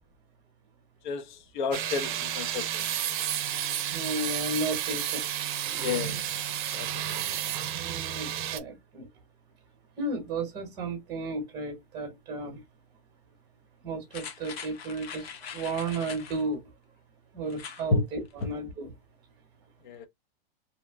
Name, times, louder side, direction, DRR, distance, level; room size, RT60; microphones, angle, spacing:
voice 1, 1.0-2.8 5.8-6.4 6.7-7.4 17.9-18.0 19.8-20.1, left 4 dB, 50° left, 0.6 m, -31 dB
sound 1, 1.7-8.6, right 11 dB, 55° right, 0.5 m, -31 dB
voice 2, 3.9-5.2 7.7-9.1 10.0-12.6 13.8-16.6 17.3-18.9, right 2 dB, 15° right, 1.0 m, -33 dB
sound 2, 14.1-16.5 17.5-17.9 18.3-18.4, left 7 dB, 90° left, 0.9 m, -42 dB
2.8 x 2.2 x 3.4 m
supercardioid pair, 170°, 30 cm